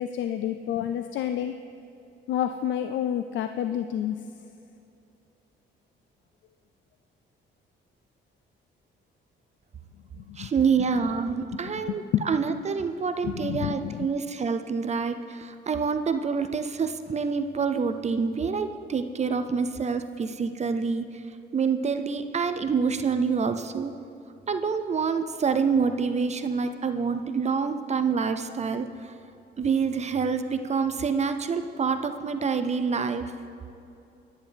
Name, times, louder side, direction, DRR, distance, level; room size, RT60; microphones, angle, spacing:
voice 1, 0.0-1.5 2.3-4.2 10.2-10.5 11.9-12.3 13.2-14.1, left 10 dB, 70° left, 8 dB, 0.4 m, -29 dB
voice 2, 10.4-21.1 21.5-23.9 24.5-29.1 29.6-33.2, right 5 dB, 35° right, 8 dB, 0.5 m, -27 dB
10.5 x 10.0 x 3.4 m, 2.7 s
cardioid pair, 90°, 20 cm